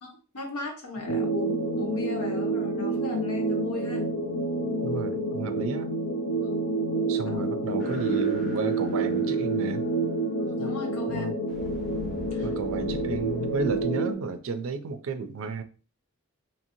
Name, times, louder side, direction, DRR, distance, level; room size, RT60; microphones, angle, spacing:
voice 1, 0.0-4.1 6.4-6.5 7.2-7.5 10.4-11.3 12.3-12.5, left 2 dB, 85° left, 1.0 m, -36 dB
sound 1, 1.1-14.1, right 2 dB, 55° left, 0.5 m, -28 dB
voice 2, 4.8-5.9 7.1-9.9 11.1-11.3 12.4-15.6, right 4 dB, 60° right, 0.4 m, -32 dB
sound 2, 7.8-9.8 11.5-13.8, equal, ahead, 0.7 m, -43 dB
2.9 x 2.8 x 2.6 m
head